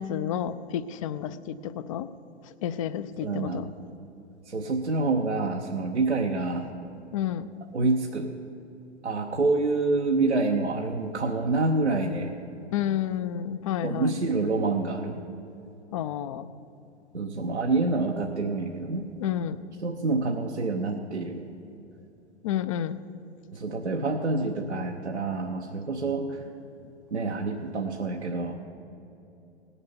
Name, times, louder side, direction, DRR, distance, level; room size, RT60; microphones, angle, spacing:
voice 1, 0.0-2.1 2.6-3.7 7.1-7.5 12.7-14.1 15.9-16.5 19.2-19.6 22.4-23.0, left 10 dB, 30° left, 14 dB, 0.4 m, -30 dB
voice 2, 3.2-3.7 4.4-6.7 7.7-8.3 9.0-12.3 13.8-15.2 17.1-19.1 19.8-21.5 23.5-26.4 27.1-28.5, right 3 dB, 85° right, 1 dB, 0.9 m, -27 dB
18.0 x 7.1 x 7.0 m, 2.9 s
figure-of-eight pair, 105°, 33 cm